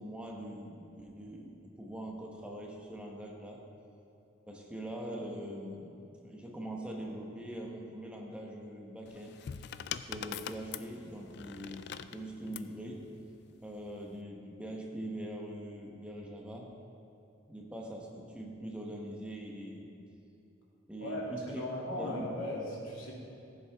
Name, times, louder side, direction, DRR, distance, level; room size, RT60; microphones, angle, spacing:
voice 1, 0.0-3.6 4.5-9.4 10.1-13.1 13.6-16.7 17.5-19.9 20.9-22.3, right 1 dB, 5° right, -1 dB, 1.1 m, -43 dB
sound 1, 9.1-12.7 13.8-14.2, left 9 dB, 55° left, 0.3 m, -43 dB
voice 2, 21.0-23.1, left 1 dB, 85° left, -4 dB, 2.3 m, -37 dB
14.5 x 7.4 x 3.5 m, 2.8 s
head